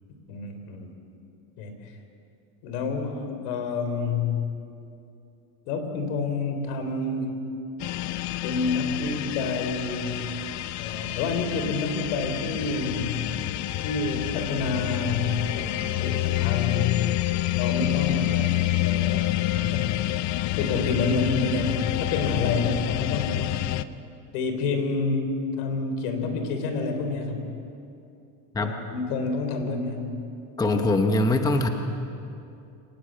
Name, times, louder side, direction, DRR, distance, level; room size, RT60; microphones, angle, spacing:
voice 1, 0.3-0.9 1.6-1.7 2.6-4.4 5.7-7.4 8.4-10.2 10.8-13.3 13.8-17.0 17.5-18.5 18.8-20.0 20.6-23.5 24.3-27.5 28.6-30.2, left 4 dB, 80° left, 6 dB, 3.9 m, -28 dB
sound 1, 7.8-23.8, left 15 dB, 40° left, 0.6 m, -28 dB
voice 2, 30.6-31.7, left 2 dB, 10° left, 5 dB, 0.9 m, -22 dB
25.5 x 19.0 x 7.7 m, 2.7 s
cardioid pair, 155°, 45 cm